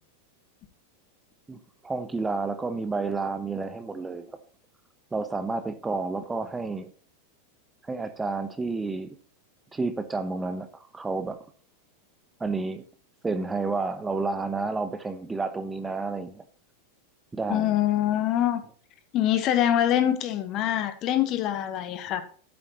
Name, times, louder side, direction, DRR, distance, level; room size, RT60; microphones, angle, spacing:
voice 1, 1.5-4.3 5.1-6.9 7.8-9.2 9.7-10.7 10.9-11.4 12.4-12.8 13.2-16.4 17.3-17.8, right 3 dB, 10° right, 0.9 m, -30 dB
voice 2, 17.5-18.6 19.1-22.2, left 11 dB, 35° left, 1.3 m, -24 dB
12.5 x 8.8 x 3.0 m
figure-of-eight pair, 90°, 0 cm